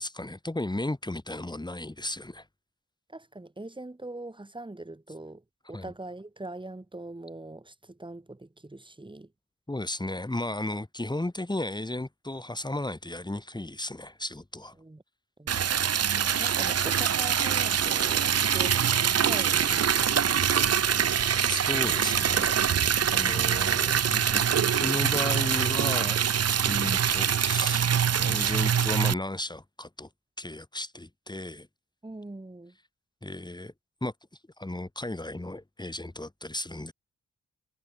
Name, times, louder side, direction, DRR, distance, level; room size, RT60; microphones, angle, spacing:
voice 1, 0.0-2.5 5.7-5.9 9.7-14.7 21.5-22.6 23.0-24.4 24.7-27.9 28.2-30.1 30.4-31.7 33.2-33.7 34.0-34.1 34.6-36.9, left 1 dB, 15° left, 4.4 m, -34 dB
voice 2, 3.1-9.3 10.7-10.8 14.8-15.0 15.4-15.5 16.4-21.2 32.0-32.8, right 2 dB, 15° right, 5.2 m, -42 dB
Liquid, 15.5-29.1, right 8 dB, 50° right, 0.9 m, -24 dB
wide cardioid pair, 110°, 31 cm